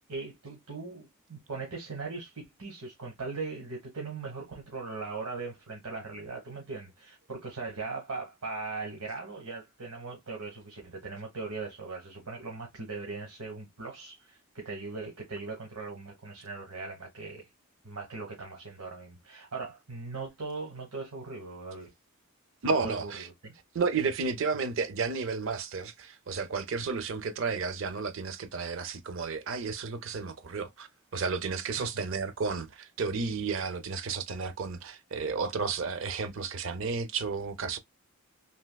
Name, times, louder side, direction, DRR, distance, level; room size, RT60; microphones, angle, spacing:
voice 1, 0.1-17.5 17.8-21.9 22.8-23.5 31.8-32.0, right 4 dB, 85° right, 1.1 m, -39 dB
voice 2, 22.6-23.3 23.7-37.8, right 4 dB, 60° right, 0.5 m, -32 dB
3.4 x 2.8 x 2.2 m
head